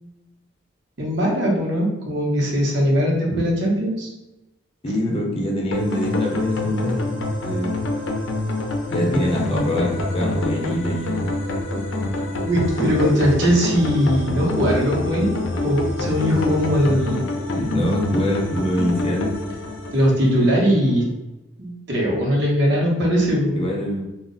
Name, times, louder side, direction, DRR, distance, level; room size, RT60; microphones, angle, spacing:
voice 1, 1.0-4.1 9.1-9.2 12.4-15.3 15.6-17.2 19.9-21.0 21.6-23.6, equal, 65° right, -3 dB, 0.9 m, -20 dB
voice 2, 4.8-7.9 8.9-11.3 17.5-19.3 23.6-24.0, left 1 dB, 30° left, -1 dB, 0.6 m, -24 dB
sound 1, 5.7-20.8, left 1 dB, 85° left, 0.5 m, -26 dB
2.3 x 2.0 x 3.7 m, 0.96 s
head